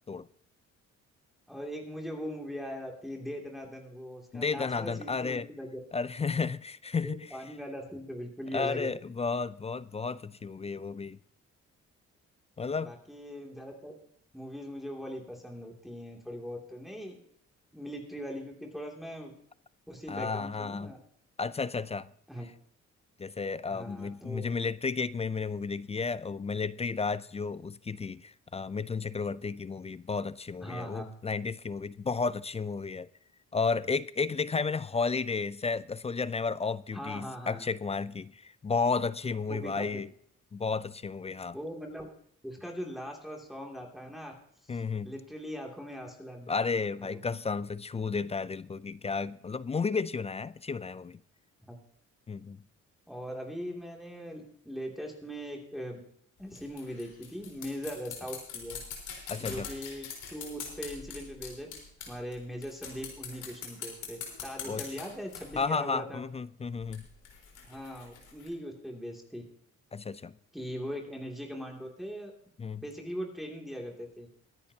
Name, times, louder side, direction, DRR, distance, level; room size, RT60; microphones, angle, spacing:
voice 1, 1.5-5.8 7.0-8.9 12.8-13.9 14.3-17.2 17.7-19.3 19.9-21.0 22.3-22.5 23.7-24.4 30.6-31.1 36.9-37.7 39.5-39.9 41.5-42.1 42.4-44.3 44.6-44.8 45.0-46.6 47.0-47.2 51.7-51.8 53.1-56.0 56.4-58.8 59.4-61.8 62.1-66.2 67.6-69.4 70.5-72.3 72.8-74.3, equal, ahead, 2.6 m, -40 dB
voice 2, 4.3-5.5 5.9-7.4 8.5-11.2 12.6-12.9 20.1-20.9 21.4-22.1 23.2-33.1 33.5-40.1 40.5-41.6 44.7-45.1 46.5-51.2 52.3-52.6 59.3-59.7 64.6-64.8 65.6-67.1 69.9-70.3 72.6-72.8, left 4 dB, 20° left, 0.4 m, -32 dB
sound 1, 56.4-62.3 62.6-65.6 66.8-68.5, left 6 dB, 85° left, 4.2 m, -43 dB
22.5 x 10.0 x 2.8 m
cardioid pair, 90°, 30 cm